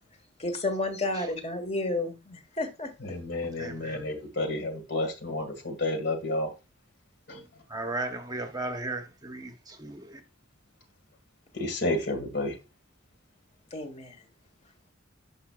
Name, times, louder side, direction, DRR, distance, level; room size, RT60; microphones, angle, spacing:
voice 1, 0.4-2.9 13.7-14.2, left 2 dB, 35° left, 1.5 m, -31 dB
voice 2, 3.0-6.5 7.3-7.5 11.5-12.6, left 2 dB, 55° left, 2.1 m, -31 dB
voice 3, 3.6-4.0 7.7-10.2, right 2 dB, 20° right, 0.9 m, -36 dB
11.0 x 5.5 x 2.4 m
head